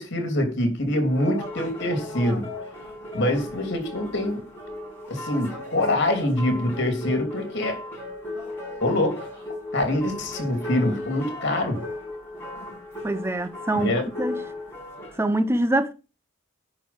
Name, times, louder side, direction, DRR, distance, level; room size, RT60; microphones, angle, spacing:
voice 1, 0.0-2.5 3.1-4.4 5.1-7.8 8.8-9.3 9.7-11.8 13.7-14.0, left 1 dB, 55° left, 3.0 m, -25 dB
sound 1, 1.1-15.2, left 2 dB, 10° left, 5.2 m, -36 dB
voice 2, 13.0-13.9 14.2-14.4 15.2-15.9, right 1 dB, 10° right, 0.6 m, -24 dB
10.0 x 4.8 x 6.0 m
head